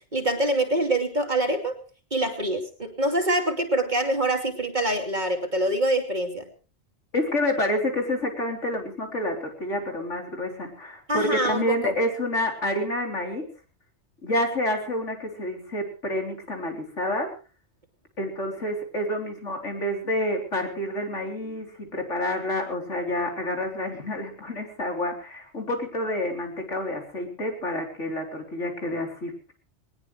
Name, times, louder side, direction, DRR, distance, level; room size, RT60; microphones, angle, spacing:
voice 1, 0.1-1.8 2.1-6.5 11.1-11.9, right 1 dB, 40° right, 4 dB, 2.8 m, -25 dB
voice 2, 7.1-13.4 14.2-17.3 18.2-29.5, left 1 dB, 85° left, 2 dB, 4.2 m, -28 dB
20.5 x 20.0 x 3.3 m, 0.35 s
omnidirectional pair, 1.2 m